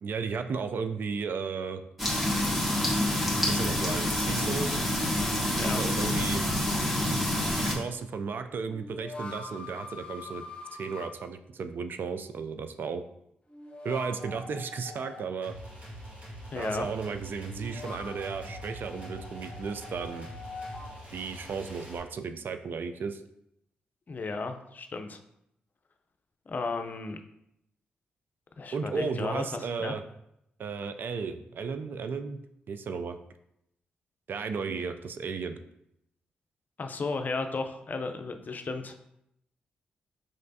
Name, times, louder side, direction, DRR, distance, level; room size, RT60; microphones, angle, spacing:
voice 1, 0.0-1.8 3.5-4.7 5.7-6.4 7.6-10.4 10.8-13.0 13.8-15.5 16.6-20.3 21.1-23.2 28.7-30.0 30.6-32.4 32.7-33.2 34.3-35.6, right 5 dB, 60° right, 9 dB, 0.4 m, -34 dB
sound 1, 2.0-7.7, left 1 dB, 5° right, 1.4 m, -27 dB
sound 2, 8.6-11.1 13.5-15.3 17.4-21.0, left 2 dB, 30° left, 1.3 m, -43 dB
sound 3, 15.4-22.0, equal, 40° right, 1.7 m, -44 dB
voice 2, 16.5-16.9 24.1-25.2 26.5-27.2 28.6-29.9 36.8-38.9, left 3 dB, 45° left, 6 dB, 0.5 m, -34 dB
5.1 x 3.2 x 2.7 m, 0.79 s
supercardioid pair, 45°, 4 cm